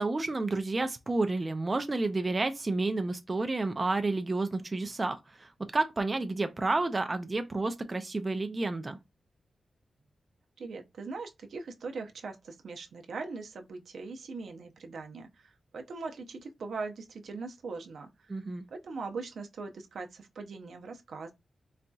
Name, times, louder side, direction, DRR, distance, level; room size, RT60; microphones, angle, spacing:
voice 1, 0.0-9.0 18.3-18.6, right 3 dB, 25° right, 0.4 m, -30 dB
voice 2, 10.6-18.3 18.7-21.3, right 4 dB, 75° right, 0.6 m, -41 dB
4.0 x 2.7 x 2.2 m
wide cardioid pair, 140°, 0 cm